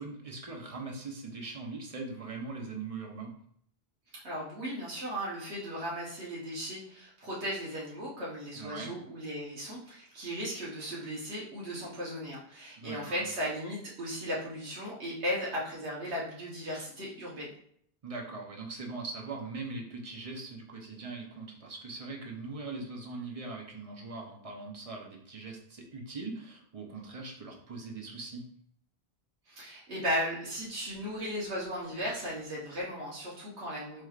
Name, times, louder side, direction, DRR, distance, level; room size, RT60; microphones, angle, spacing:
voice 1, 0.0-3.3 8.5-8.9 12.8-13.3 18.0-28.4, right 3 dB, 40° right, 1 dB, 0.7 m, -41 dB
voice 2, 4.2-17.5 29.5-34.1, equal, 90° right, -6 dB, 1.3 m, -36 dB
4.3 x 3.3 x 2.4 m, 0.65 s
omnidirectional pair, 1.1 m